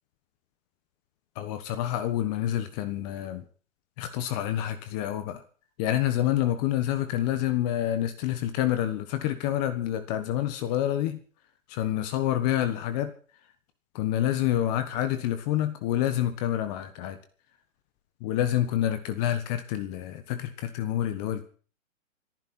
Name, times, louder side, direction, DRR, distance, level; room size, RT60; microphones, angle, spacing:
voice 1, 1.3-3.4 4.0-5.4 5.8-11.2 11.7-13.1 13.9-17.2 18.2-21.4, left 12 dB, 30° left, 10 dB, 1.4 m, -28 dB
26.5 x 10.5 x 4.4 m, 0.41 s
hypercardioid pair, 135°, 39 cm